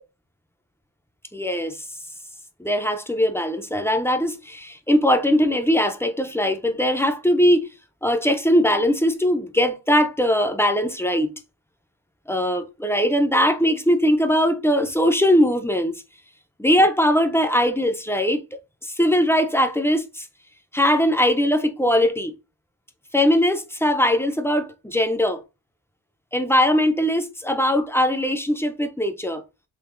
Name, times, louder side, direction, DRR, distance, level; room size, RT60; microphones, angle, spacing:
voice 1, 1.3-1.8 2.6-7.7 8.0-11.3 12.3-16.0 16.6-18.4 18.8-20.3 20.7-22.3 23.1-25.4 26.3-29.4, equal, 5° left, 0.4 m, -20 dB
3.7 x 2.4 x 2.4 m
wide cardioid pair, 65°, 50 cm